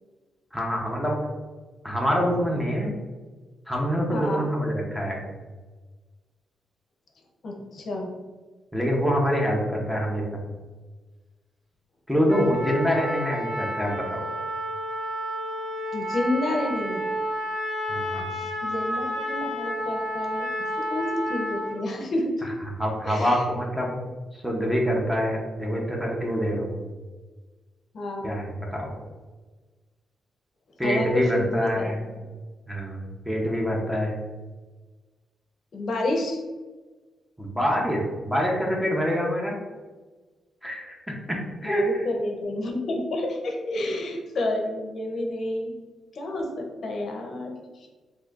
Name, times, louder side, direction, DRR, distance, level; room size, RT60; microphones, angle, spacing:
voice 1, 0.5-1.2 1.8-2.9 3.7-5.3 8.7-10.4 12.1-14.2 17.9-18.3 22.4-24.0 24.3-26.8 28.2-28.9 30.8-32.0 32.7-34.2 37.4-39.6 40.6-42.0, equal, 5° right, -1 dB, 0.6 m, -26 dB
voice 2, 4.1-4.5 7.4-8.1 15.9-17.0 18.3-20.5 20.8-22.5 23.0-23.4 24.6-24.7 27.9-28.3 30.8-31.9 35.7-36.4 41.6-45.7 46.1-47.9, left 1 dB, 50° left, 1 dB, 0.6 m, -29 dB
Trumpet, 12.3-21.8, equal, 75° right, 1.3 m, -31 dB
4.1 x 2.6 x 2.4 m, 1.3 s
cardioid pair, 135°, 0 cm